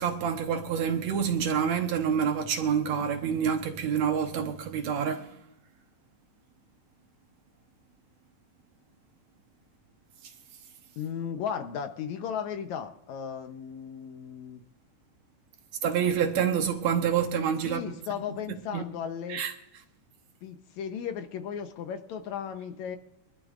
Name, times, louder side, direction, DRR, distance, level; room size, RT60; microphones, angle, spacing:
voice 1, 0.0-5.3 15.8-17.8 18.7-18.8 19.3-19.5, right 7 dB, 65° right, 2.1 m, -27 dB
voice 2, 11.0-14.6 17.6-19.4 20.4-23.0, left 8 dB, 70° left, 2.1 m, -35 dB
24.0 x 12.5 x 2.5 m
omnidirectional pair, 3.7 m